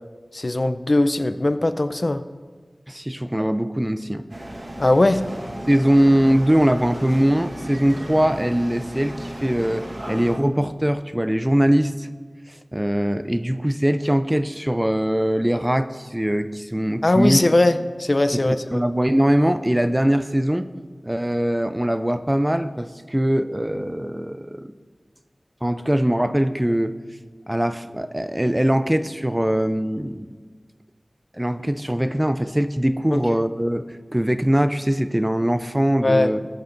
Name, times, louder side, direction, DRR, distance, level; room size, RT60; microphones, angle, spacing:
voice 1, 0.3-2.2 4.8-5.2 17.0-17.7 18.0-18.8 33.1-33.2 36.0-36.3, left 2 dB, 50° left, 10 dB, 0.5 m, -19 dB
voice 2, 2.9-4.2 5.7-12.1 12.7-17.4 18.3-20.7 21.1-24.7 25.6-26.9 27.5-30.3 31.3-33.8 34.1-36.5, equal, 15° right, 11 dB, 0.5 m, -21 dB
sound 1, 4.3-10.4, right 1 dB, 50° right, 1.3 m, -35 dB
20.5 x 9.2 x 2.6 m, 1.5 s
wide cardioid pair, 55°, 0 cm